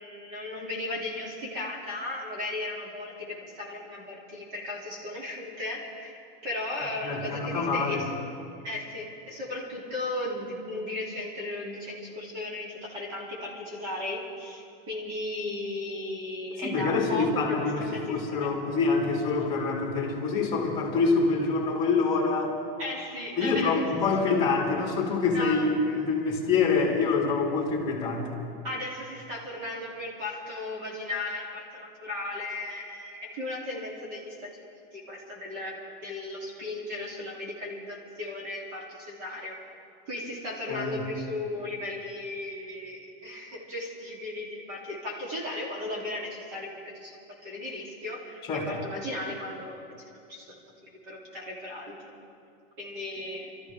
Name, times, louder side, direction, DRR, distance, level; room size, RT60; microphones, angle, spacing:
voice 1, 0.0-3.1 3.6-8.1 8.6-18.5 19.4-19.5 22.8-23.8 25.3-25.7 28.6-34.5 34.9-35.7 36.0-39.5 40.1-47.2 47.4-48.4 48.7-49.8 50.3-50.5 50.8-51.9 52.8-53.5, left 2 dB, 40° right, -4 dB, 3.2 m, -36 dB
voice 2, 7.0-8.0 16.6-17.8 18.1-22.5 23.4-28.3 40.7-41.0 48.4-48.8, left 4 dB, 15° left, -2 dB, 2.8 m, -26 dB
27.5 x 14.0 x 3.6 m, 2.4 s
supercardioid pair, 180°, 31 cm